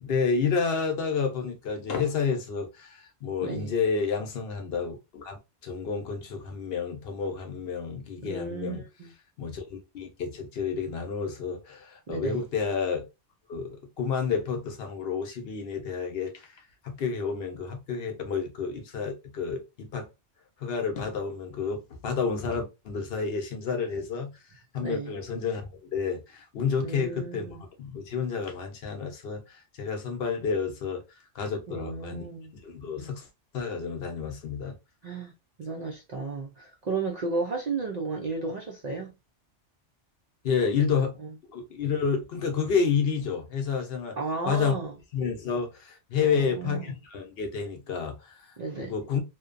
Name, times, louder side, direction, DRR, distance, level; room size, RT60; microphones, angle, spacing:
voice 1, 0.0-8.8 9.4-13.1 13.5-20.1 20.6-24.3 24.7-31.0 31.3-32.3 32.6-33.3 33.5-34.8 40.4-41.1 41.5-44.2 44.4-44.8 45.1-49.2, left 5 dB, 60° left, 0.8 m, -30 dB
voice 2, 3.4-3.7 8.2-9.1 12.1-12.4 24.8-25.2 26.8-27.6 31.7-32.5 35.0-35.3 35.6-39.1 40.8-40.9 41.2-41.3 44.2-44.9 46.2-46.9 48.6-48.9, right 4 dB, 60° right, 0.4 m, -33 dB
2.6 x 2.2 x 2.4 m
omnidirectional pair, 1.2 m